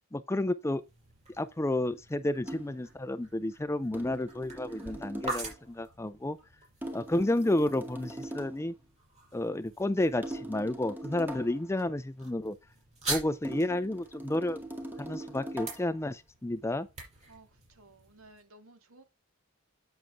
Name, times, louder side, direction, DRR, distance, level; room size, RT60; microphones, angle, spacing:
voice 1, 0.1-0.8 1.4-6.4 6.9-8.7 9.3-12.6 13.1-14.6 15.0-16.9, left 1 dB, 15° left, 0.5 m, -31 dB
sound 1, 0.6-18.4, right 3 dB, 30° right, 6.0 m, -45 dB
sound 2, 2.4-2.9 3.9-5.6 6.8-8.7 10.2-11.7 13.4-16.0, right 1 dB, 10° right, 2.0 m, -42 dB
voice 2, 17.3-19.0, right 2 dB, 70° right, 2.1 m, -56 dB
9.1 x 8.0 x 3.5 m
head